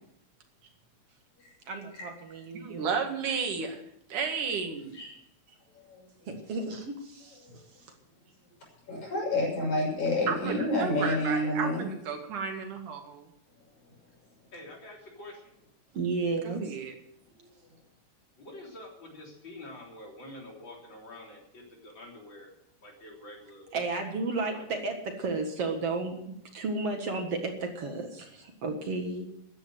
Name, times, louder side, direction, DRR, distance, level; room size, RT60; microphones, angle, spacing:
voice 1, 1.7-2.9 6.3-7.4 15.9-16.8 23.7-29.3, right 3 dB, 55° right, 4 dB, 2.5 m, -33 dB
voice 2, 2.5-3.8 4.1-4.9 10.3-13.3 16.4-16.9, right 5 dB, 85° right, 4 dB, 3.6 m, -33 dB
voice 3, 5.8-6.3 7.4-7.6 8.9-11.9 17.4-17.5, left 1 dB, 70° left, -2 dB, 7.8 m, -29 dB
voice 4, 14.5-15.6 18.4-22.5 22.8-23.7 24.5-24.6, left 1 dB, 35° left, -1 dB, 4.2 m, -47 dB
14.5 x 10.0 x 7.8 m, 0.76 s
omnidirectional pair, 3.5 m